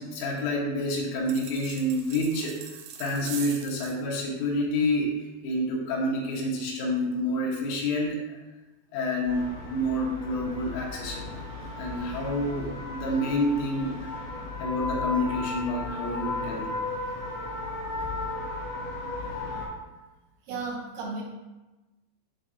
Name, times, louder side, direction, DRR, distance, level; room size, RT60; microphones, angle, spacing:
voice 1, 0.0-2.5 3.0-5.1 5.4-8.2 8.9-11.4 11.8-13.9 14.6-16.7, left 1 dB, 80° left, -3 dB, 3.7 m, -28 dB
sound 1, 1.3-4.0, right 8 dB, 90° right, 3.2 m, -42 dB
sound 2, 9.3-19.7, left 2 dB, 40° left, 1.6 m, -35 dB
voice 2, 20.5-21.2, right 4 dB, 75° right, -5 dB, 3.8 m, -34 dB
11.5 x 4.1 x 2.7 m, 1.1 s
omnidirectional pair, 5.7 m